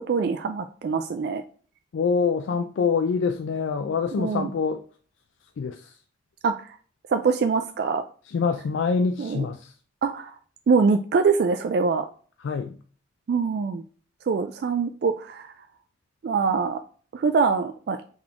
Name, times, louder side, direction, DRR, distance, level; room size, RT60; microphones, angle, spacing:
voice 1, 0.0-1.4 4.2-4.5 6.4-6.7 7.1-8.0 9.2-9.4 10.0-10.3 10.7-12.0 13.3-13.8 14.3-15.5 16.2-16.8 17.1-18.0, right 5 dB, 55° right, 0.3 m, -24 dB
voice 2, 1.9-4.8 5.6-6.0 8.3-9.8 12.4-12.8, left 5 dB, 80° left, 0.3 m, -25 dB
4.0 x 3.6 x 2.8 m
head